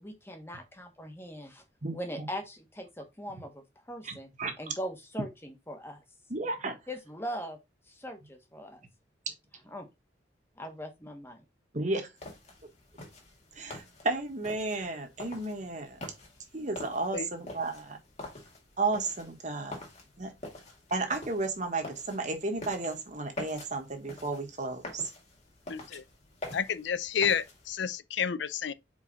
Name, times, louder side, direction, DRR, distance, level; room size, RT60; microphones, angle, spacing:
voice 1, 0.0-1.6 1.9-4.3 4.6-6.0 6.9-7.6 7.9-8.8 9.7-9.9 10.6-11.4, equal, 15° left, 1.3 m, -40 dB
voice 2, 1.8-2.3 4.0-4.5 6.3-6.8 11.7-12.1 13.5-16.0 16.5-18.0 18.8-19.8 20.2-20.3 20.9-25.1, right 3 dB, 40° right, 1.4 m, -33 dB
sound 1, 12.2-27.7, left 2 dB, 35° left, 2.2 m, -46 dB
voice 3, 25.7-26.0 26.5-28.7, left 7 dB, 75° left, 0.5 m, -30 dB
4.9 x 4.9 x 4.1 m
head